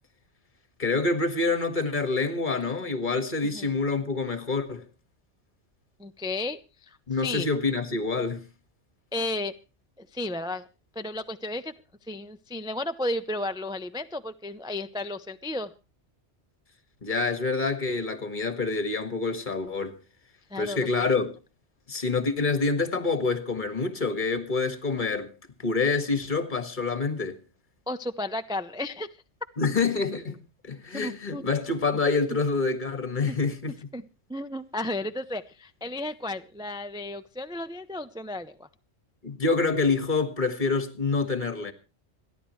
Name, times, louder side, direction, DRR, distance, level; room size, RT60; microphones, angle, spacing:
voice 1, 0.8-4.8 7.1-8.4 17.0-20.0 20.6-21.3 21.9-25.3 25.6-27.4 29.6-33.9 39.2-41.7, left 4 dB, 45° left, 1.8 m, -27 dB
voice 2, 6.0-7.5 9.1-9.6 10.0-10.7 11.0-11.7 12.1-15.7 20.5-20.9 27.9-29.2 30.9-31.5 33.9-34.0 34.3-38.7, left 1 dB, 5° right, 0.4 m, -33 dB
26.5 x 11.0 x 3.1 m
omnidirectional pair, 1.2 m